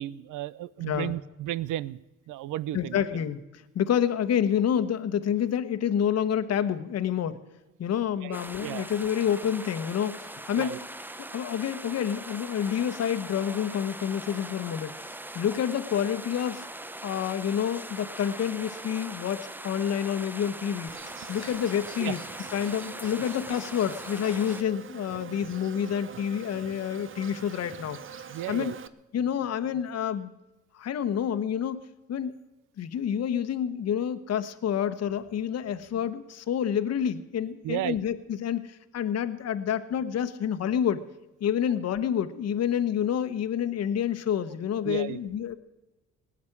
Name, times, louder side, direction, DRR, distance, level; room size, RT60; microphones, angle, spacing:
voice 1, 0.0-2.0 2.3-3.0 8.2-8.9 10.6-10.8 22.0-22.1 28.3-28.8 37.6-38.0 44.8-45.2, right 14 dB, 80° right, 20 dB, 0.7 m, -33 dB
voice 2, 2.7-7.4 7.8-10.7 11.2-15.0 15.3-16.7 17.0-20.9 21.3-22.2 22.5-28.0 28.5-28.7 29.1-30.3 30.8-31.8 32.1-32.3 32.8-41.0 41.4-45.6, left 9 dB, 55° left, 10 dB, 1.2 m, -28 dB
sound 1, 8.3-24.6, right 1 dB, 5° right, 0.7 m, -41 dB
Insect, 20.9-28.9, right 7 dB, 40° right, 0.9 m, -45 dB
18.5 x 7.4 x 10.0 m, 1.1 s
cardioid pair, 105°, 31 cm